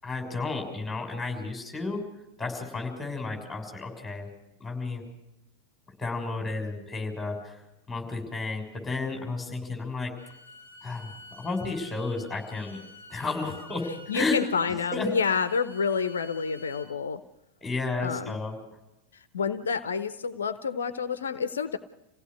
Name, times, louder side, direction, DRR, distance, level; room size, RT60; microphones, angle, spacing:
voice 1, 0.0-2.0 2.4-4.3 4.6-5.0 6.0-7.6 7.9-10.1 10.8-12.8 13.1-13.8 14.1-14.4 14.9-15.1 17.6-18.6, left 3 dB, 10° left, 3 dB, 6.4 m, -32 dB
Bowed string instrument, 10.2-16.9, left 1 dB, 70° right, 7.0 m, -49 dB
voice 2, 14.1-17.2 18.0-18.4 19.1-21.8, left 6 dB, 65° left, 12 dB, 0.8 m, -29 dB
27.5 x 17.0 x 6.4 m, 0.92 s
figure-of-eight pair, 90°, 0 cm